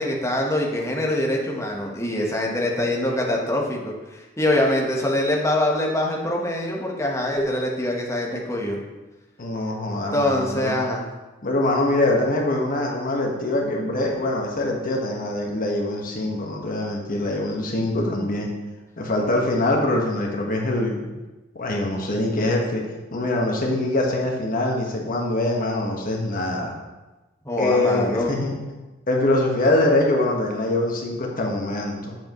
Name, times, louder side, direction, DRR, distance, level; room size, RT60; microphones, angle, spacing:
voice 1, 0.0-8.8 10.1-11.1 27.4-28.3, left 1 dB, 15° left, -1 dB, 1.2 m, -24 dB
voice 2, 9.4-10.8 11.4-18.5 19.0-21.1 21.5-22.8 23.1-26.8 27.6-28.5 29.1-32.2, left 1 dB, 45° left, 0 dB, 1.4 m, -23 dB
8.0 x 7.5 x 3.0 m, 1.1 s
head